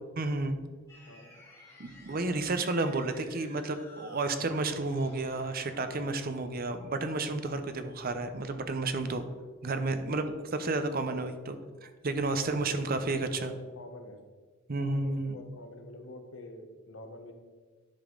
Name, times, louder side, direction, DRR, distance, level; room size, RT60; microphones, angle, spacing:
voice 1, 0.2-0.6 1.8-9.2 9.6-13.5 14.7-15.4, right 2 dB, 50° right, 8 dB, 0.7 m, -31 dB
sound 1, 0.9-7.4, left 1 dB, 15° left, 2.7 m, -54 dB
voice 2, 2.1-2.4 12.4-14.2 14.7-17.3, left 1 dB, 80° left, 5 dB, 1.0 m, -47 dB
10.5 x 5.3 x 3.8 m, 1.5 s
head